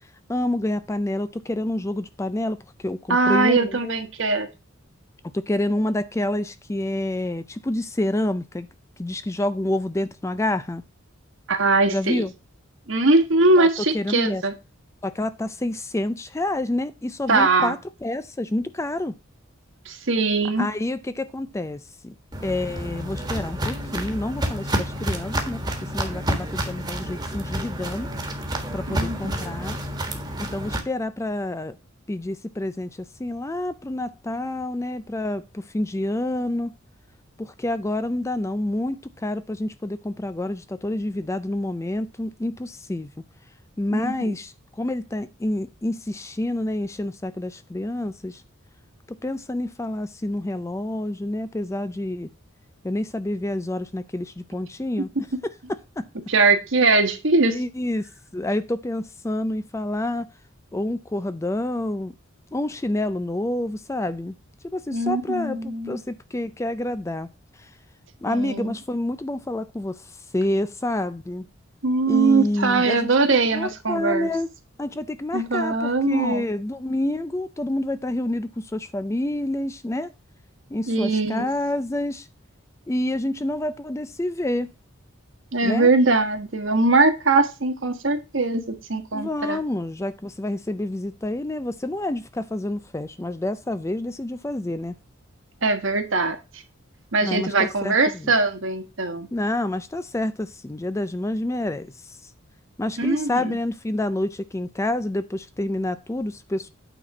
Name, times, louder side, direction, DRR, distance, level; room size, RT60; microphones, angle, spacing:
voice 1, 0.3-3.9 5.3-8.7 9.0-10.8 11.9-12.3 13.6-13.7 13.9-14.4 15.0-19.1 20.6-22.2 22.4-28.1 28.7-29.8 30.4-31.8 32.1-36.7 37.4-43.1 43.8-48.4 49.1-52.3 52.8-55.1 55.4-56.1 57.5-60.3 60.7-62.1 62.5-64.4 64.6-67.7 68.2-71.5 72.1-74.5 74.8-80.1 80.7-82.3 82.9-84.7 85.6-85.9 89.1-95.0 97.2-98.3 99.3-102.3 102.8-106.7, left 1 dB, 15° left, 0.4 m, -28 dB
voice 2, 3.1-4.5 11.5-12.2 12.9-14.5 17.3-17.7 19.8-20.7 28.9-29.3 43.9-44.3 56.3-57.6 64.9-66.0 68.3-68.7 71.8-74.3 75.3-76.4 80.9-81.5 85.5-89.6 95.6-96.4 97.1-99.3 103.0-103.5, right 3 dB, 60° right, 1.4 m, -21 dB
Walk footsteps, 22.3-30.8, right 1 dB, 20° right, 1.5 m, -29 dB
9.1 x 4.2 x 5.9 m
head